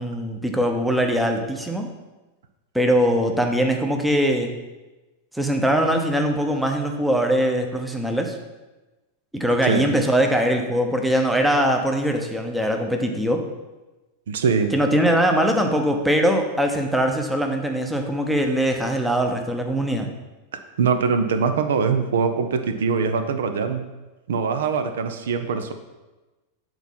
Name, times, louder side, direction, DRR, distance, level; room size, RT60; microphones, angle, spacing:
voice 1, 0.0-1.9 2.7-4.5 5.3-8.4 9.3-13.4 14.7-20.1, equal, 5° right, 3 dB, 0.8 m, -21 dB
voice 2, 14.3-14.7 20.8-23.8 24.3-25.7, right 5 dB, 60° right, 8 dB, 0.5 m, -22 dB
8.1 x 4.3 x 4.3 m, 1.1 s
figure-of-eight pair, 90°, 0 cm